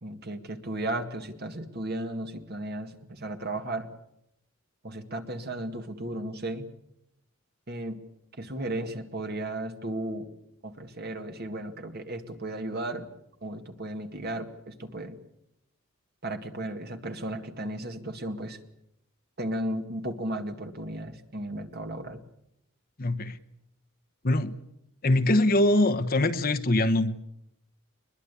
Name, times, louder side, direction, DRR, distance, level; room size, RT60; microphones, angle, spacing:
voice 1, 0.0-3.9 4.8-6.7 7.7-8.0 8.4-10.3 10.6-13.1 13.4-15.2 16.2-18.6 19.4-22.2, right 1 dB, 45° right, 2.0 m, -35 dB
voice 2, 23.0-23.4 24.2-24.6 25.0-27.1, left 1 dB, 40° left, 1.0 m, -23 dB
22.5 x 21.5 x 8.3 m
head